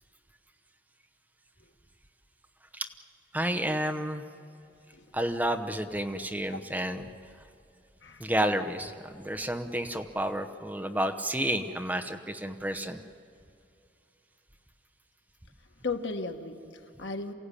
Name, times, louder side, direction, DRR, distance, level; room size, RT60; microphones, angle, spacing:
voice 1, 3.3-4.2 5.1-7.1 8.2-13.0, right 1 dB, 10° right, 7 dB, 0.9 m, -30 dB
voice 2, 15.8-17.3, left 3 dB, 90° left, 5 dB, 1.6 m, -36 dB
28.0 x 16.0 x 10.0 m, 2.6 s
head